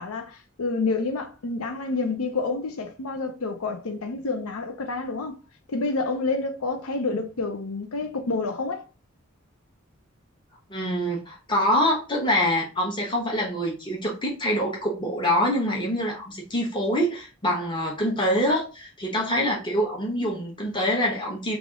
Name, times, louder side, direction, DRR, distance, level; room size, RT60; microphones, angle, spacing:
voice 1, 0.0-5.4 5.7-8.8, left 3 dB, 85° left, 0.6 m, -28 dB
voice 2, 10.7-21.6, equal, 20° left, 0.9 m, -25 dB
3.4 x 2.5 x 3.6 m
head